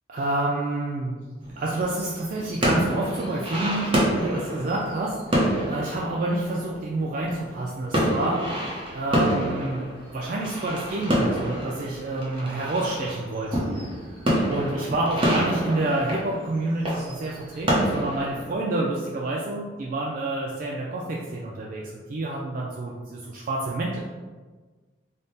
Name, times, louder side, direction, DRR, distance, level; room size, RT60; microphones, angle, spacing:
voice 1, 0.1-1.3 1.6-8.6 8.9-13.7 14.1-14.2 14.5-24.0, right 2 dB, 45° right, -3 dB, 0.3 m, -28 dB
sound 1, 1.4-7.6 7.9-18.5, equal, 30° right, 0.8 m, -28 dB
3.4 x 2.1 x 4.0 m, 1.4 s
head